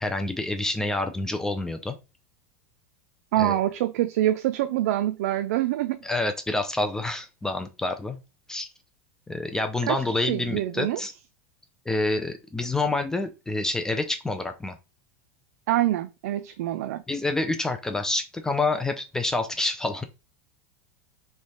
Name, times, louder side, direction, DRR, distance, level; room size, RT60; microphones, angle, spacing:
voice 1, 0.0-2.0 3.4-3.6 6.0-8.2 8.5-8.7 9.3-11.1 11.9-14.8 17.1-20.0, left 2 dB, 5° left, 0.4 m, -27 dB
voice 2, 3.3-6.0 9.8-11.0 15.7-17.0, right 13 dB, 75° right, 0.4 m, -25 dB
3.2 x 3.2 x 4.1 m
supercardioid pair, 140°, 8 cm